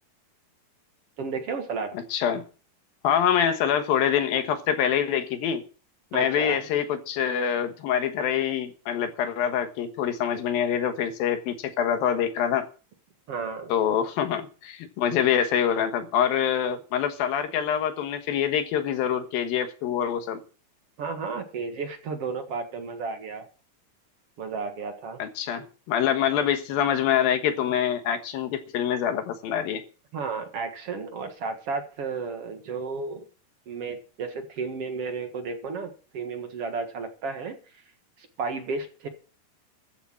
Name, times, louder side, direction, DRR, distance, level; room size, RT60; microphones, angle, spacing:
voice 1, 1.2-1.9 6.1-6.7 13.3-13.7 21.0-23.5 24.4-25.2 26.4-26.5 30.1-33.3 33.7-37.8 38.2-39.1, right 4 dB, 50° right, 2.2 m, -33 dB
voice 2, 2.1-2.4 3.0-5.6 6.1-12.7 13.7-20.4 25.2-29.8, left 9 dB, 80° left, 3.1 m, -25 dB
14.5 x 6.9 x 7.6 m
omnidirectional pair, 4.2 m